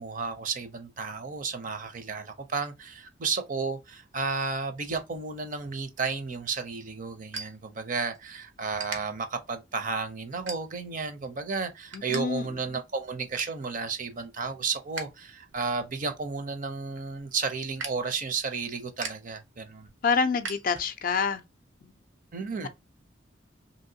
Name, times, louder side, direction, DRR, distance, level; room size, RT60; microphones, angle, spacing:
voice 1, 0.0-19.9 22.3-22.7, right 4 dB, 45° right, 0.5 m, -33 dB
sound 1, 6.3-8.3 8.7-9.0 9.6-9.8 10.4-11.0 11.4-12.2 12.5-12.6 13.0-13.6 14.1-15.2 15.5-21.2, right 4 dB, 85° right, 0.8 m, -41 dB
voice 2, 11.9-12.5 20.0-21.4, left 5 dB, 45° left, 0.4 m, -27 dB
3.0 x 2.8 x 2.7 m
head